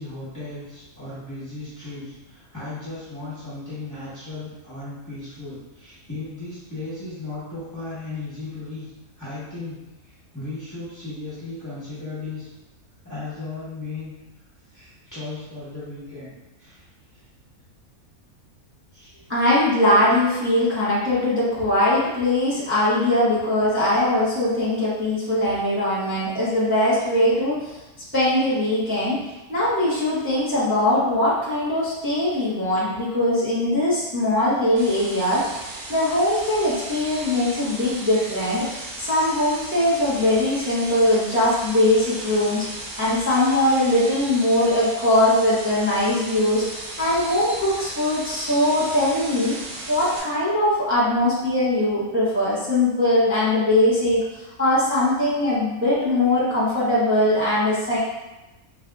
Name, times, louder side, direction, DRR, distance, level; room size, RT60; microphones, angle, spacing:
voice 1, 0.0-8.8 9.2-9.8 10.0-12.5 13.0-14.1 14.7-16.9 17.1-17.2 18.9-19.1, left 3 dB, 15° left, -13 dB, 1.1 m, -36 dB
voice 2, 19.3-27.8 28.1-29.2 29.5-46.6 47.0-49.6 49.9-58.0, left 1 dB, 15° right, -9 dB, 0.5 m, -21 dB
sound 1, 34.8-50.2, right 1 dB, 85° right, 1.2 m, -36 dB
4.1 x 2.5 x 2.2 m, 1.0 s
omnidirectional pair, 1.5 m